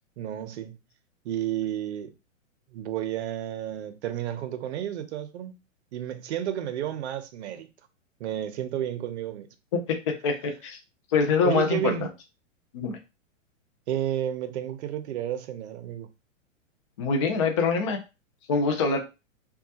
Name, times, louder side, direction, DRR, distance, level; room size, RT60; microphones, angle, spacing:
voice 1, 0.2-0.8 1.2-2.1 2.7-5.5 5.9-7.7 8.2-9.5 11.4-12.1 13.9-16.1, right 11 dB, 55° right, 0.6 m, -31 dB
voice 2, 10.2-10.8 11.1-12.1 12.7-13.0 17.0-18.0 18.5-19.0, left 4 dB, 25° left, 0.3 m, -24 dB
3.1 x 2.3 x 2.7 m
hypercardioid pair, 150°, 39 cm